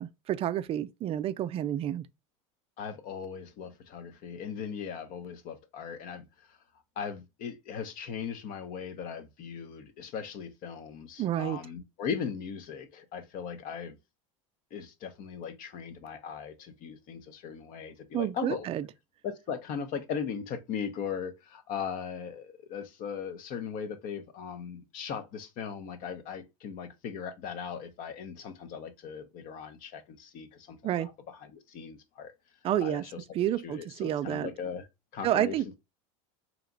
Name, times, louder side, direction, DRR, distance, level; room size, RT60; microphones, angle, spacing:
voice 1, 0.0-2.0 11.2-11.6 18.1-18.9 30.8-31.1 32.6-33.0 33.3-34.5 35.2-35.7, right 11 dB, 35° right, 0.4 m, -29 dB
voice 2, 2.8-6.6 7.0-14.0 14.7-18.7 19.2-32.3 32.8-33.2 33.6-34.9 35.1-35.8, left 7 dB, 50° left, 0.8 m, -38 dB
3.2 x 3.0 x 3.8 m
supercardioid pair, 110°, 18 cm